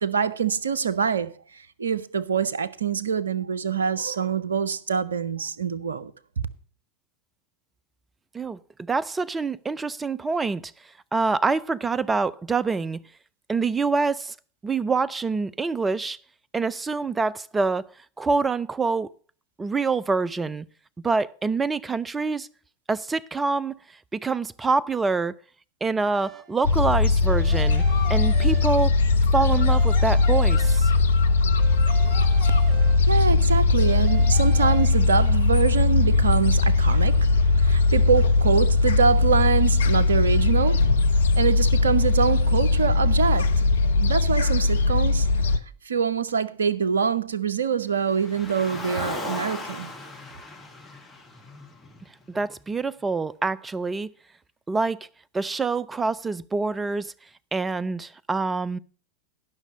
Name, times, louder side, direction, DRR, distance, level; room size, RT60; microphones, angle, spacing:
voice 1, 0.0-6.5 32.8-40.9 41.3-43.6 44.0-45.3 45.8-49.9, right 6 dB, 70° right, 0.6 m, -25 dB
voice 2, 8.9-10.7 11.1-13.0 13.5-14.4 14.6-16.2 16.5-17.9 18.2-19.1 19.6-20.6 21.0-22.5 22.9-23.8 24.1-25.3 25.8-27.8 28.1-29.0 29.3-30.9 52.3-54.1 54.7-55.0 55.3-57.1 57.5-58.8, right 4 dB, 15° right, 0.4 m, -26 dB
sound 1, 26.1-26.7 27.2-29.1 29.4-31.2 31.6-33.4 33.8-34.9, right 7 dB, 30° right, 0.9 m, -42 dB
Gull seagull, 26.6-45.6, left 3 dB, 65° left, 0.7 m, -20 dB
Car, 48.0-52.4, left 3 dB, 10° left, 2.0 m, -37 dB
11.5 x 6.0 x 6.4 m
figure-of-eight pair, 90°, 0 cm